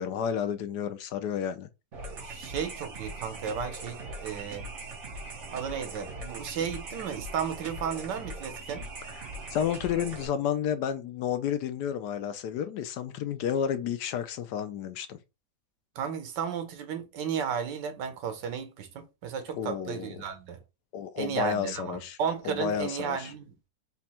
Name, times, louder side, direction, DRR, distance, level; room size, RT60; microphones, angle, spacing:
voice 1, 0.0-1.7 9.1-15.2 19.5-20.2 20.9-22.2 22.4-23.3, left 8 dB, 75° left, 1.2 m, -31 dB
sound 1, 1.9-10.3, right 2 dB, 45° right, 1.4 m, -41 dB
voice 2, 2.2-4.7 5.5-8.9 15.9-20.6 21.2-23.5, right 7 dB, 80° right, 1.5 m, -34 dB
4.3 x 2.4 x 4.2 m
omnidirectional pair, 1.9 m